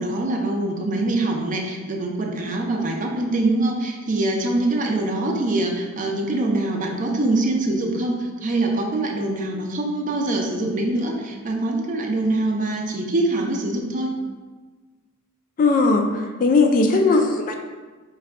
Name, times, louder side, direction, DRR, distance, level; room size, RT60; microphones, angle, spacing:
voice 1, 0.0-14.1, right 2 dB, 35° right, 1 dB, 0.5 m, -24 dB
voice 2, 15.6-17.6, left 3 dB, 40° left, 4 dB, 0.3 m, -18 dB
4.6 x 2.2 x 3.5 m, 1.3 s
head